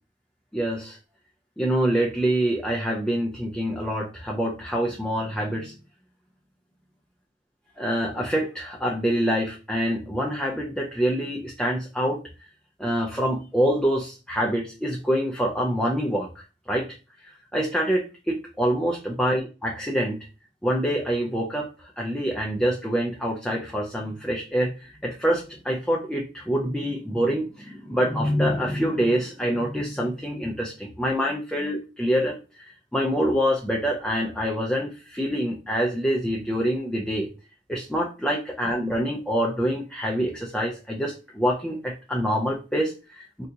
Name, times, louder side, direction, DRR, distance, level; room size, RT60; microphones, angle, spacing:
voice 1, 0.5-1.0 1.6-5.7 7.8-12.2 12.8-16.9 17.5-20.2 20.6-37.3 37.7-43.5, equal, 5° left, -1 dB, 0.4 m, -26 dB
3.8 x 2.7 x 2.3 m, 0.32 s
head